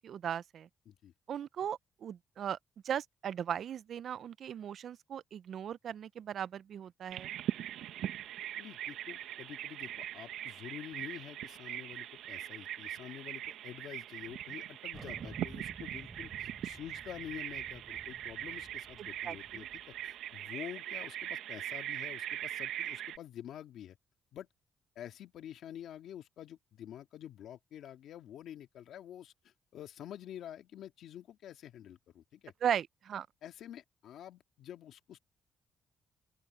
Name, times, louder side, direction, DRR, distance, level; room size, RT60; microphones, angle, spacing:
voice 1, 0.0-0.7 1.3-2.6 2.8-7.3 19.0-19.7 32.6-33.3, right 9 dB, 65° right, 0.5 m, -37 dB
Bird vocalization bird call bird song, 7.1-23.2, right 12 dB, 85° right, 1.0 m, -41 dB
voice 2, 8.6-24.0 24.3-24.5 25.0-32.5 33.4-35.2, left 10 dB, 75° left, 2.0 m, -48 dB
Thunder, 14.9-20.1, right 3 dB, 20° right, 3.3 m, -53 dB
open air
cardioid pair, 90°, 0 cm